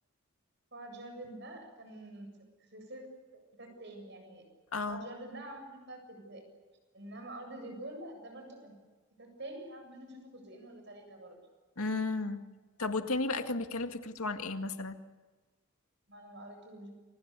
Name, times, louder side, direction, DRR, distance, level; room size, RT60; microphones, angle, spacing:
voice 1, 0.7-2.3 2.6-4.4 4.8-6.4 6.9-8.8 9.2-11.4 16.1-16.9, right 1 dB, 50° right, 5 dB, 7.6 m, -47 dB
voice 2, 11.8-12.4 12.8-15.0, left 3 dB, 80° left, 7 dB, 2.0 m, -33 dB
29.5 x 25.5 x 6.9 m, 1.3 s
head